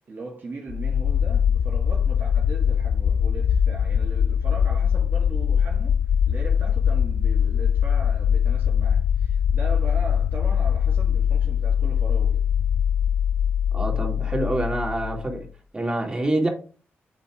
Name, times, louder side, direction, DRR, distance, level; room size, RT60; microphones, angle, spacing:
voice 1, 0.1-6.0 6.3-12.4, right 3 dB, 50° right, 1.7 m, -39 dB
sound 1, 0.7-15.5, left 8 dB, 75° left, 0.4 m, -22 dB
voice 2, 13.7-15.5 15.7-16.5, right 1 dB, 20° right, 2.6 m, -26 dB
8.9 x 4.3 x 3.7 m
cardioid pair, 70°, 4 cm